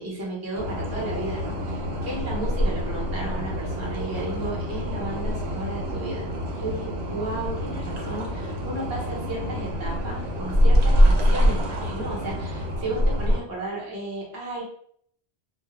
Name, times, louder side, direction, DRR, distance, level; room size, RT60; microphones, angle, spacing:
voice 1, 0.0-6.3 6.6-14.6, right 1 dB, 25° right, -5 dB, 0.7 m, -34 dB
sound 1, 0.5-13.4, equal, 80° right, 0.8 m, -25 dB
2.2 x 2.1 x 2.9 m, 0.63 s
omnidirectional pair, 1.1 m